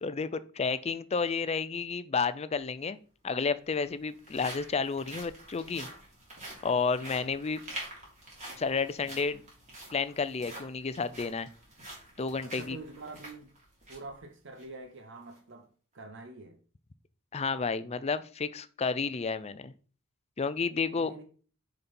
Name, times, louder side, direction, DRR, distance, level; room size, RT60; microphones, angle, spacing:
voice 1, 0.0-3.0 3.2-5.9 6.6-7.6 8.6-9.4 9.9-11.5 12.2-12.8 17.3-19.7 20.4-21.1, left 5 dB, 30° left, 0.5 m, -31 dB
sound 1, 2.5-2.6 3.6-14.1 14.5-14.6 15.2-15.4, right 1 dB, 35° right, 3.4 m, -47 dB
voice 2, 12.4-13.5 13.9-15.7 15.9-16.6 20.9-21.3, right 2 dB, 60° right, 0.9 m, -45 dB
6.9 x 5.3 x 4.3 m
head